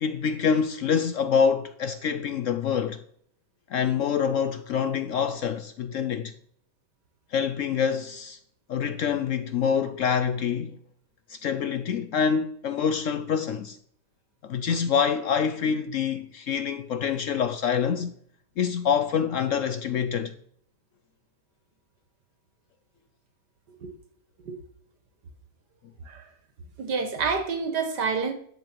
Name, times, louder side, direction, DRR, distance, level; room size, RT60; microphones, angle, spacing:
voice 1, 0.0-3.0 3.7-6.3 7.3-8.4 8.7-10.8 11.3-13.8 14.4-18.1 18.6-20.3, left 7 dB, 65° left, 0.8 m, -26 dB
voice 2, 26.8-28.3, right 5 dB, 80° right, 2.0 m, -28 dB
11.0 x 7.1 x 4.5 m
omnidirectional pair, 1.8 m